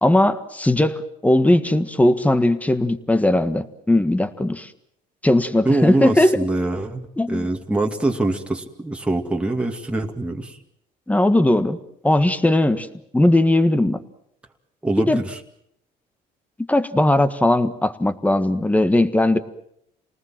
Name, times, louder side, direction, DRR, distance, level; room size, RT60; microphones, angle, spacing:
voice 1, 0.0-4.7 5.2-6.4 7.2-7.5 11.1-11.8 12.0-12.9 13.1-14.0 15.1-15.2 16.7-19.4, left 1 dB, 10° left, 11 dB, 1.6 m, -18 dB
voice 2, 5.6-10.5 14.8-15.4, right 2 dB, 5° right, 2 dB, 2.3 m, -24 dB
28.5 x 19.5 x 7.6 m, 0.73 s
cardioid pair, 110°, 17 cm